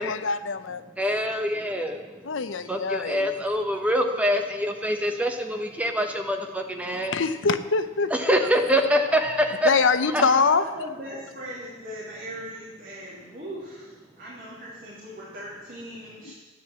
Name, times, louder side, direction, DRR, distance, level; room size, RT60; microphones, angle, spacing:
voice 1, 0.0-0.8 2.2-3.3 7.0-8.4 9.6-10.6 16.2-16.3, left 4 dB, 70° left, 12 dB, 0.7 m, -24 dB
voice 2, 1.0-2.3 2.7-7.1 8.1-9.7 10.1-10.3, equal, 5° right, 3 dB, 1.1 m, -25 dB
voice 3, 2.5-3.2 10.1-16.3, equal, 45° right, -7 dB, 3.1 m, -39 dB
11.5 x 9.9 x 7.5 m, 1.3 s
head